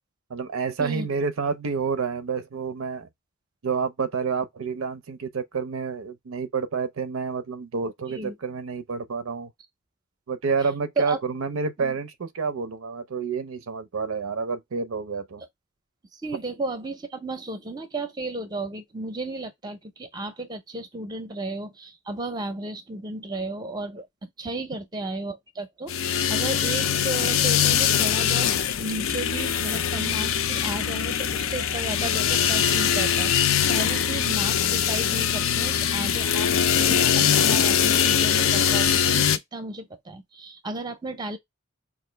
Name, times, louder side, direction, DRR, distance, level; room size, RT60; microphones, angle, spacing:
voice 1, 0.3-3.1 3.6-9.5 10.3-15.4, right 5 dB, 70° right, 0.5 m, -29 dB
voice 2, 16.1-28.5 28.8-36.5 36.8-41.4, right 2 dB, 20° right, 0.6 m, -34 dB
sound 1, 25.9-39.4, left 8 dB, 65° left, 0.5 m, -22 dB
4.7 x 2.5 x 3.2 m
head